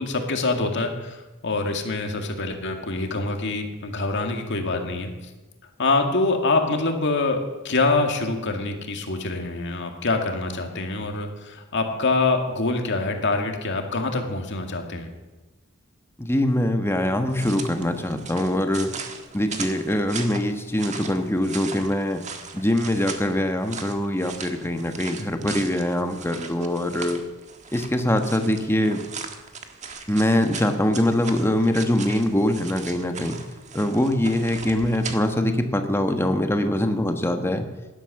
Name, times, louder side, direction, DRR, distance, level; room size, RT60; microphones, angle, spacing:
voice 1, 0.0-5.1 5.8-7.4 7.6-15.1, left 3 dB, 60° left, 4 dB, 2.1 m, -25 dB
voice 2, 16.2-18.9 19.3-22.2 22.5-27.2 27.7-29.0 30.1-33.4 33.7-37.7, left 1 dB, 10° left, 6 dB, 1.4 m, -23 dB
sound 1, 17.3-35.2, right 5 dB, 35° right, 1.5 m, -38 dB
16.5 x 11.5 x 6.6 m, 1.1 s
head